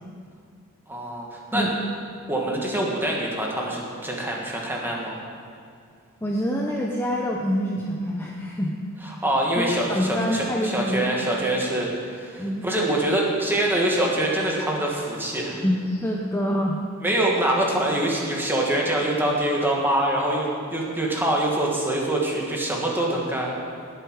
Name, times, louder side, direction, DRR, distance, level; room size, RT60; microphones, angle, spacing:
voice 1, 0.9-1.7 2.3-5.2 9.0-15.6 17.0-23.6, right 1 dB, 10° right, -2 dB, 1.9 m, -25 dB
voice 2, 6.2-8.7 9.6-11.0 12.4-12.7 15.6-16.8, equal, 10° left, -1 dB, 0.8 m, -26 dB
18.5 x 8.2 x 4.8 m, 2.2 s
head